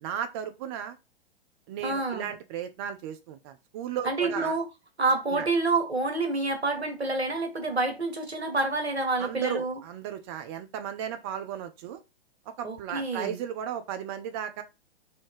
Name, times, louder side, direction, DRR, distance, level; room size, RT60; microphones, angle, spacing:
voice 1, 0.0-1.0 1.7-4.6 5.3-5.5 9.2-12.0 12.5-14.6, right 9 dB, 25° right, 0.4 m, -35 dB
voice 2, 1.8-2.3 4.0-4.6 5.0-9.8 12.6-13.4, right 3 dB, 85° right, 1.3 m, -28 dB
3.2 x 2.7 x 4.6 m
figure-of-eight pair, 110°, 31 cm